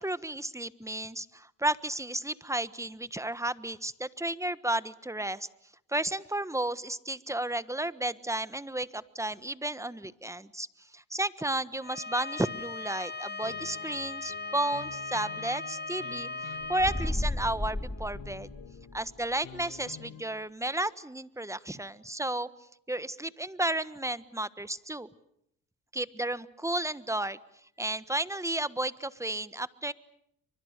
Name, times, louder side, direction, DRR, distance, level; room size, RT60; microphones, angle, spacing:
voice 1, 0.0-5.5 5.9-10.7 10.9-16.3 16.7-18.5 18.9-22.5 22.9-25.1 25.9-27.4 27.8-29.9, right 1 dB, 10° right, 15 dB, 1.3 m, -33 dB
Bowed string instrument, 11.8-17.1, left 3 dB, 30° left, 1.8 m, -38 dB
sound 1, 13.4-20.2, left 8 dB, 70° left, 3.2 m, -49 dB
sound 2, 16.6-19.1, left 1 dB, 5° left, 2.7 m, -33 dB
30.0 x 25.0 x 6.7 m, 0.75 s
cardioid pair, 75°, 34 cm